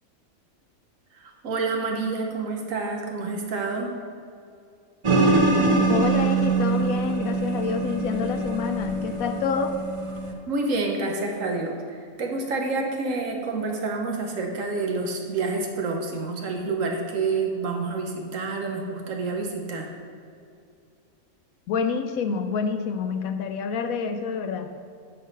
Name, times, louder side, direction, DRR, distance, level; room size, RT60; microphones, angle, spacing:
voice 1, 1.1-3.9 10.5-19.9, right 3 dB, 65° right, 2 dB, 1.3 m, -28 dB
sound 1, 5.0-10.3, right 3 dB, 30° right, 0.5 m, -23 dB
voice 2, 5.9-9.7 21.7-24.7, left 5 dB, 75° left, 8 dB, 1.0 m, -27 dB
11.0 x 3.9 x 5.4 m, 2.4 s
omnidirectional pair, 1.6 m